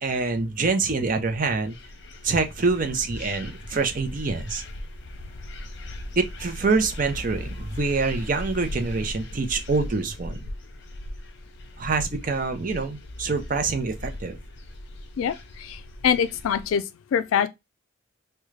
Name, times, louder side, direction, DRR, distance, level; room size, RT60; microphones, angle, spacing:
voice 1, 0.0-1.7 2.2-4.6 6.2-10.4 11.8-14.4, right 4 dB, 40° right, 0.6 m, -26 dB
sound 1, 1.0-16.7, left 1 dB, 55° left, 0.7 m, -38 dB
voice 2, 15.2-16.8 17.1-17.5, left 7 dB, 80° left, 0.3 m, -24 dB
3.6 x 2.2 x 3.1 m
head